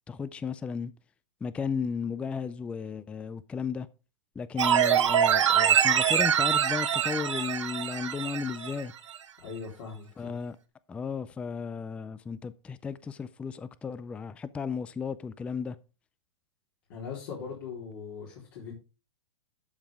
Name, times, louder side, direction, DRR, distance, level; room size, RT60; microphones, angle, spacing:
voice 1, 0.1-0.9 1.4-3.9 4.4-8.9 10.2-10.6 10.9-15.8, left 5 dB, 10° left, 0.3 m, -34 dB
sound 1, 4.6-8.8 9.1-9.2, right 9 dB, 85° right, 1.2 m, -24 dB
voice 2, 9.4-10.3 16.9-18.8, left 6 dB, 55° left, 3.8 m, -40 dB
12.0 x 5.3 x 3.5 m
hypercardioid pair, 135°, 15 cm